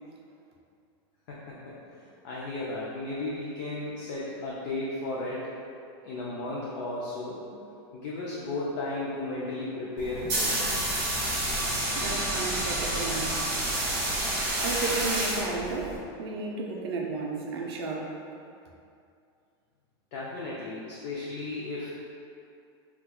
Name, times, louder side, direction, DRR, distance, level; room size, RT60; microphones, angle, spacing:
voice 1, 1.3-5.5 6.0-10.7 20.1-21.9, left 2 dB, 40° left, -6 dB, 0.3 m, -35 dB
sound 1, 10.0-16.0, right 1 dB, 25° right, 1.2 m, -29 dB
voice 2, 12.0-13.4 14.6-18.2, right 3 dB, 70° right, 0 dB, 0.5 m, -33 dB
4.2 x 2.2 x 2.2 m, 2.5 s
supercardioid pair, 180°, 14 cm